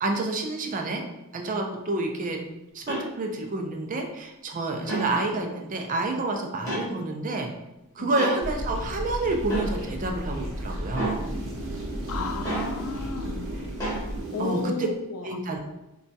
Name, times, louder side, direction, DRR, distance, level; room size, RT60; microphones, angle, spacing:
voice 1, 0.0-1.0 1.3-2.4 2.7-7.5 7.9-11.2 14.4-14.9 15.2-15.6, right 2 dB, 35° right, 3 dB, 0.4 m, -29 dB
sound 1, 2.9-3.1 4.8-5.1 6.7-6.9 8.2-8.4 9.5-9.7 10.9-11.2 12.4-12.7 13.8-14.0, right 2 dB, 15° left, 0.9 m, -29 dB
sound 2, 8.4-14.7, right 1 dB, 60° right, 0.8 m, -33 dB
voice 2, 12.1-13.5 14.3-15.3, left 5 dB, 85° left, 7 dB, 0.4 m, -34 dB
4.0 x 2.3 x 2.7 m, 0.96 s
head